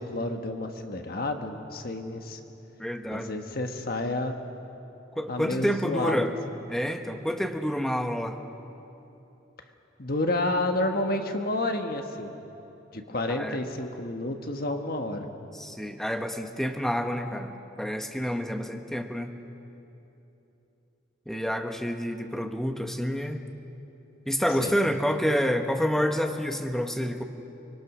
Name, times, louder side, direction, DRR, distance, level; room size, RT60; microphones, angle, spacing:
voice 1, 0.0-2.4 3.1-4.4 5.3-6.2 10.0-12.3 12.9-15.3 24.6-24.7, left 2 dB, 50° left, 5 dB, 1.4 m, -30 dB
voice 2, 2.8-3.3 5.1-6.3 6.7-8.4 13.3-13.6 15.5-19.3 21.3-23.4 24.3-27.2, equal, ahead, 5 dB, 1.1 m, -28 dB
24.5 x 22.5 x 6.2 m, 2.9 s
head